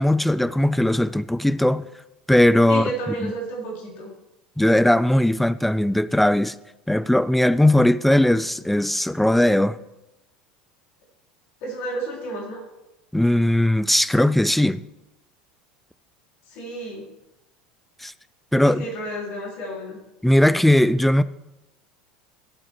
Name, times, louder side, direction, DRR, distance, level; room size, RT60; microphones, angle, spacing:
voice 1, 0.0-1.8 2.3-3.3 4.6-6.5 6.9-9.8 13.1-14.8 18.0-18.1 18.5-18.8 20.2-21.2, left 1 dB, 5° left, 0.4 m, -19 dB
voice 2, 2.7-4.1 11.6-12.6 16.5-17.1 18.6-20.0, right 1 dB, 55° left, 3.8 m, -31 dB
15.5 x 8.5 x 3.1 m
figure-of-eight pair, 70°, 4 cm